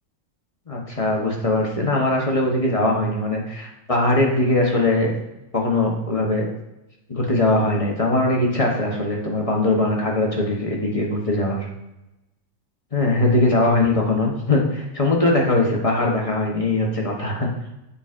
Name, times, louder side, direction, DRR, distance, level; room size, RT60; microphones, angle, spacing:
voice 1, 0.7-5.1 5.5-6.4 7.1-11.7 12.9-17.5, left 2 dB, 30° left, -1 dB, 0.9 m, -21 dB
6.9 x 5.5 x 2.5 m, 0.92 s
omnidirectional pair, 1.4 m